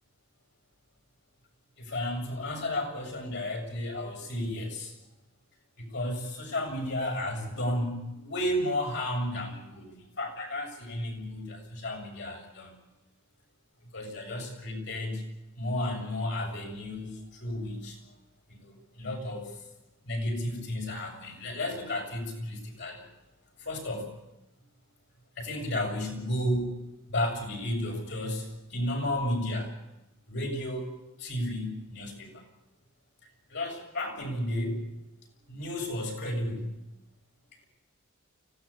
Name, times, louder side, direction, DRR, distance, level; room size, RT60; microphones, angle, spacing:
voice 1, 1.8-4.9 5.8-12.7 13.9-15.2 15.6-18.0 18.5-19.5 20.0-23.0 23.6-24.1 25.4-26.8 27.1-29.7 30.3-30.9 31.2-32.4 33.5-34.8 35.5-36.7, left 1 dB, 60° left, 2 dB, 7.0 m, -33 dB
25.0 x 17.5 x 8.6 m, 0.95 s
head